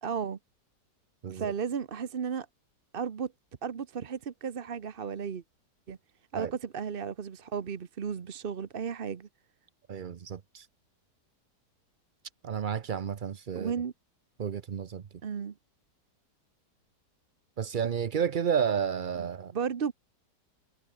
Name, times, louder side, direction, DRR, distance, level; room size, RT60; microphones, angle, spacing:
voice 1, 0.0-0.4 1.3-2.5 2.9-3.3 3.6-5.4 5.9-6.0 6.3-9.3 13.5-13.9 15.2-15.5 19.2-19.9, right 6 dB, 40° right, 0.9 m, -34 dB
voice 2, 9.9-10.7 12.4-13.7 14.4-15.0 17.6-19.5, right 7 dB, 60° right, 0.5 m, -31 dB
omnidirectional pair, 1.9 m